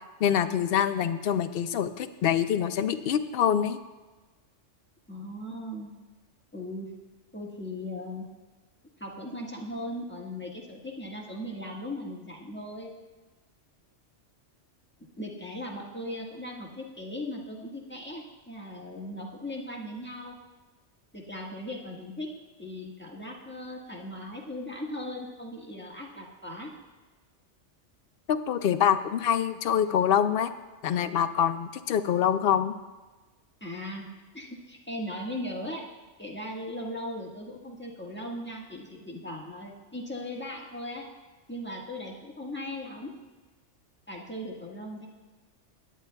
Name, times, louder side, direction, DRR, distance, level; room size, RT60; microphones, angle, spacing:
voice 1, 0.2-3.8 28.3-30.5 30.8-32.7, left 9 dB, 60° left, 10 dB, 0.7 m, -25 dB
voice 2, 5.1-5.9 6.5-6.9 7.3-8.3 9.0-12.9 15.2-20.3 21.1-22.3 22.6-26.7 33.6-34.1 34.3-35.8 36.2-41.0 41.5-43.1 44.1-45.1, left 1 dB, 10° left, -3 dB, 1.3 m, -38 dB
17.5 x 10.0 x 2.3 m, 1.2 s
omnidirectional pair, 1.3 m